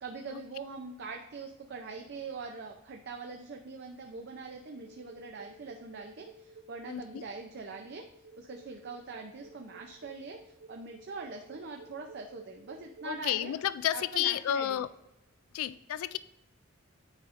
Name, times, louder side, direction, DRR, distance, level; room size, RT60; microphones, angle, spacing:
voice 1, 0.0-8.0 8.4-13.5 13.9-14.8, right 4 dB, 50° right, 3 dB, 0.5 m, -43 dB
sound 1, 4.7-13.1, right 3 dB, 70° right, 2.5 m, -52 dB
voice 2, 6.9-7.2 13.0-14.9 15.5-16.2, left 11 dB, 85° left, 16 dB, 0.3 m, -31 dB
9.7 x 4.9 x 2.5 m, 0.93 s
head